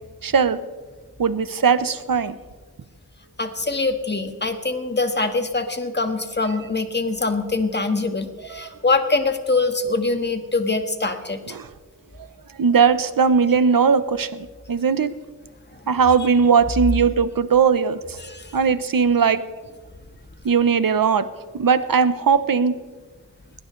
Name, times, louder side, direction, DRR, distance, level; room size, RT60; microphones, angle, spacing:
voice 1, 0.2-0.6 1.2-2.4 8.5-8.7 11.5-11.7 12.6-15.1 15.9-18.2 18.5-19.4 20.4-21.3 21.5-22.8, right 6 dB, 75° right, 13 dB, 0.9 m, -19 dB
voice 2, 3.4-11.4 18.2-18.5, left 3 dB, 30° left, 6 dB, 1.7 m, -23 dB
21.0 x 18.5 x 3.3 m, 1.3 s
wide cardioid pair, 65°, 35 cm